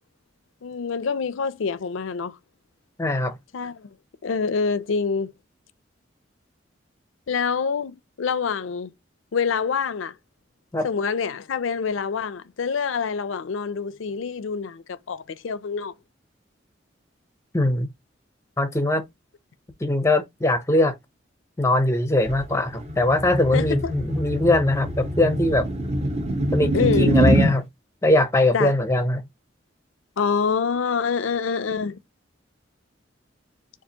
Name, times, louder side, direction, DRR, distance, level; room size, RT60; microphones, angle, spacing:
voice 1, 0.6-2.4 3.5-3.9 4.2-5.3 7.3-8.9 9.3-10.2 10.8-15.9 23.5-23.9 26.7-27.1 28.5-28.7 30.2-32.0, left 5 dB, 80° left, 0.5 m, -26 dB
voice 2, 3.0-3.4 10.7-10.9 17.5-17.9 18.6-19.0 19.8-21.0 21.6-25.7 26.5-27.7 28.0-29.2, left 1 dB, 15° left, 0.6 m, -21 dB
sound 1, 22.3-27.5, right 1 dB, 35° right, 0.9 m, -24 dB
6.8 x 2.5 x 2.8 m
head